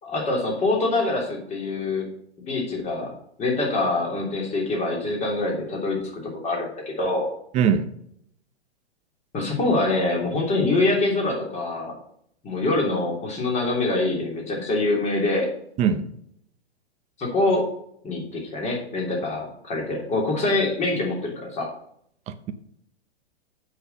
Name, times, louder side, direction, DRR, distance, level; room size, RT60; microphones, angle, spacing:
voice 1, 0.0-2.1 2.5-3.1 3.4-7.3 9.3-11.9 12.4-15.5 17.2-17.7 18.0-21.7, left 2 dB, 20° left, -1 dB, 3.2 m, -25 dB
voice 2, 7.5-7.9 15.8-16.1 22.3-22.5, right 7 dB, 20° right, 10 dB, 0.7 m, -22 dB
7.7 x 6.4 x 6.9 m, 0.69 s
hypercardioid pair, 130°, 33 cm